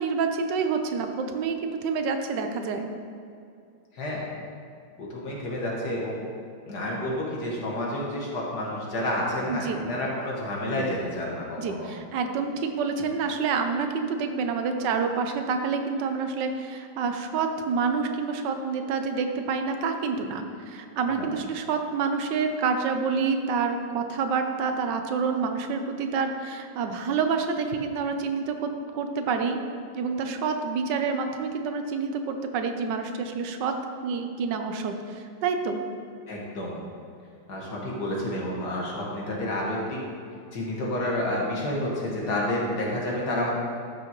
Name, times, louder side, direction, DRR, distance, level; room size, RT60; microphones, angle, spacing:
voice 1, 0.0-2.9 9.5-9.8 11.6-29.6 29.9-33.7 34.0-35.8, right 5 dB, 80° right, 6 dB, 1.3 m, -28 dB
voice 2, 3.9-4.3 5.0-6.2 6.7-11.9 21.1-21.3 36.3-36.8 37.5-40.0 40.5-43.5, left 1 dB, 65° left, -4 dB, 2.1 m, -30 dB
12.5 x 6.2 x 3.0 m, 2.4 s
omnidirectional pair, 1.9 m